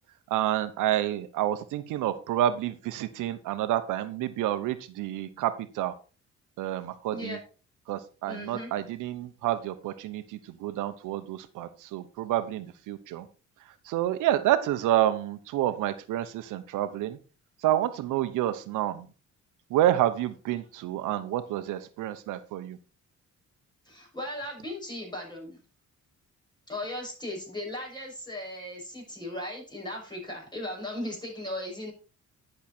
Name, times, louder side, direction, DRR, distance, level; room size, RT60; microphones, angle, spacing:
voice 1, 0.3-5.9 6.6-7.4 7.9-13.3 13.9-17.2 17.6-19.1 19.7-22.8, right 12 dB, 90° right, 11 dB, 0.9 m, -29 dB
voice 2, 8.2-8.7 23.8-25.6 26.7-31.9, left 1 dB, 15° left, -2 dB, 6.6 m, -37 dB
10.5 x 6.5 x 4.4 m, 0.34 s
cardioid pair, 90°, 30 cm